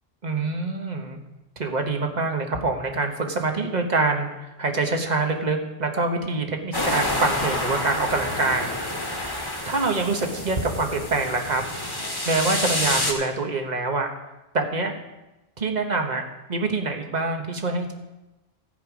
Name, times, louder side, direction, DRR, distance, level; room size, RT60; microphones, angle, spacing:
voice 1, 0.2-1.2 1.6-8.7 9.7-11.6 12.2-14.1 14.5-14.9 15.6-16.2 16.5-17.9, right 3 dB, 40° right, 4 dB, 1.4 m, -25 dB
sound 1, 6.7-13.1, left 1 dB, 20° left, 1.7 m, -28 dB
14.5 x 8.1 x 5.0 m, 1.0 s
omnidirectional pair, 1.1 m